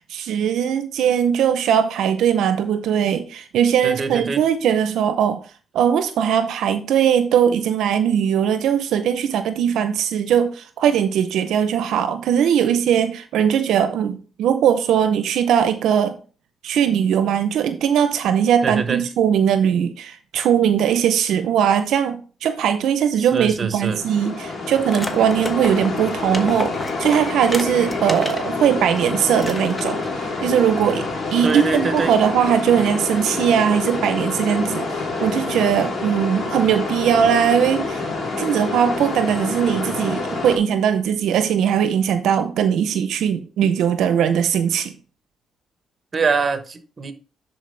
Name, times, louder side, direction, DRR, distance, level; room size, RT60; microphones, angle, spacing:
voice 1, 0.0-5.4 5.7-16.2 16.6-26.7 27.0-38.1 38.4-44.9, right 8 dB, 80° right, 0.6 m, -20 dB
voice 2, 3.8-4.4 18.6-19.0 23.2-24.0 31.4-32.1 46.1-47.1, right 4 dB, 35° right, 1.1 m, -24 dB
sound 1, 23.9-40.6, left 3 dB, 40° left, 2.9 m, -27 dB
sound 2, 24.9-28.5 28.9-29.0 29.4-30.1, left 1 dB, 15° left, 1.2 m, -31 dB
10.0 x 4.4 x 3.3 m
cardioid pair, 90°, 0 cm